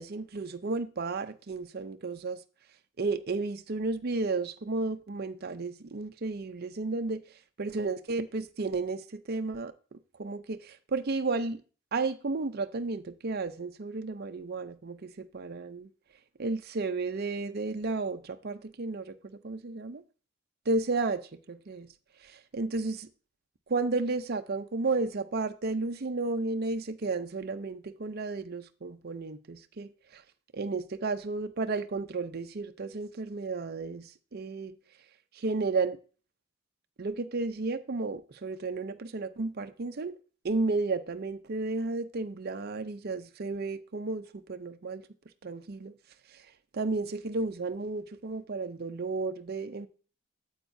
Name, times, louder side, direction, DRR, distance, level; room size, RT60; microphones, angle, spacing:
voice 1, 0.0-2.4 3.0-7.2 7.6-11.6 11.9-15.9 16.4-20.0 20.7-21.9 22.2-23.1 23.7-30.2 30.5-34.7 35.3-36.0 37.0-40.1 40.4-45.0 45.4-46.0 46.3-46.4 46.7-49.9, right 3 dB, 45° right, 0.6 m, -33 dB
9.2 x 8.1 x 2.7 m
head